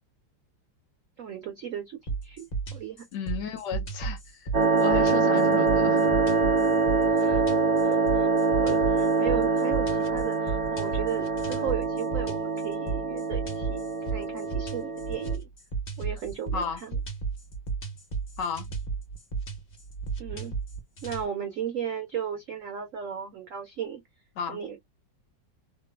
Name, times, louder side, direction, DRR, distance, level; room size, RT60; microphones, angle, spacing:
voice 1, 1.2-3.0 7.1-7.4 7.8-13.8 14.1-15.5 16.0-17.0 20.2-20.5 21.0-24.0 24.5-24.8, right 8 dB, 85° right, 0.7 m, -35 dB
sound 1, 2.1-21.3, right 5 dB, 40° left, 0.8 m, -34 dB
voice 2, 3.1-4.5 4.8-6.1 16.5-16.8 18.4-18.7 24.4-24.6, left 7 dB, 70° left, 1.2 m, -33 dB
sound 2, 4.5-15.4, right 4 dB, 50° right, 0.5 m, -25 dB
3.0 x 2.2 x 2.2 m
omnidirectional pair, 2.1 m